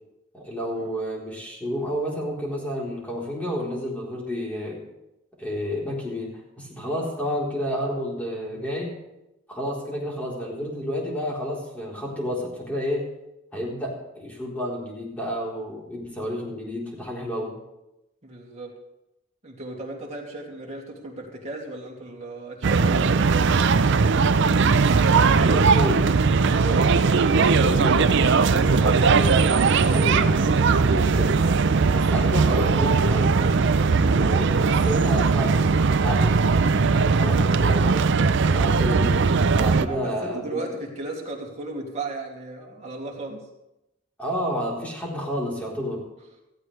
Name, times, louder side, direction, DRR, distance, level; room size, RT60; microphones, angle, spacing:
voice 1, 0.3-4.8 5.4-8.9 9.5-13.0 13.5-17.5 25.4-26.0 26.6-28.1 28.4-29.4 29.7-33.3 33.9-36.4 36.9-38.1 38.5-39.2 39.6-40.6 44.2-46.1, equal, 5° left, -4 dB, 4.0 m, -30 dB
voice 2, 18.2-18.7 19.4-23.7 39.8-43.5, right 2 dB, 35° right, -1 dB, 2.7 m, -35 dB
sound 1, 22.6-39.9, right 4 dB, 60° right, 0.5 m, -19 dB
17.0 x 14.5 x 3.4 m, 0.90 s
head